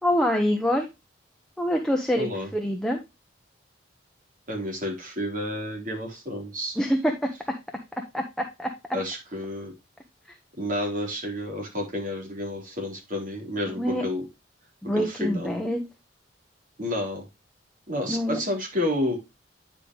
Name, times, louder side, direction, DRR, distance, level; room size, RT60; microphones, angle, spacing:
voice 1, 0.0-0.9 1.6-3.0 6.8-7.1 8.1-8.7 13.8-14.0 14.8-15.8 18.1-18.4, equal, 5° left, 2 dB, 1.0 m, -25 dB
voice 2, 2.2-2.5 4.5-6.8 8.9-9.7 10.6-14.3 14.9-15.6 16.8-17.2 17.9-19.2, left 1 dB, 45° right, 1 dB, 3.6 m, -30 dB
9.9 x 5.2 x 3.0 m, 0.24 s
head